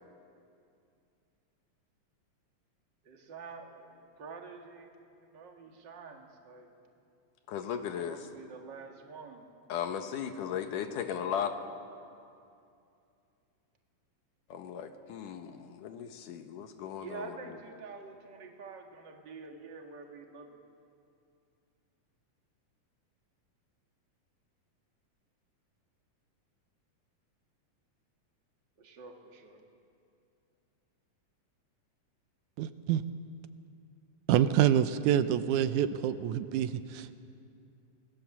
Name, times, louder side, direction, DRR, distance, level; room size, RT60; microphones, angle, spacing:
voice 1, 3.0-5.0 5.2-6.7 8.0-9.5 17.0-20.6 28.8-29.6, right 4 dB, 40° right, 2 dB, 2.2 m, -47 dB
voice 2, 7.5-8.2 9.7-11.5 14.5-17.3, left 8 dB, 90° left, 7 dB, 2.8 m, -36 dB
voice 3, 32.6-33.0 34.3-37.2, right 10 dB, 80° right, 11 dB, 2.2 m, -27 dB
26.0 x 19.5 x 7.3 m, 2.5 s
omnidirectional pair, 3.6 m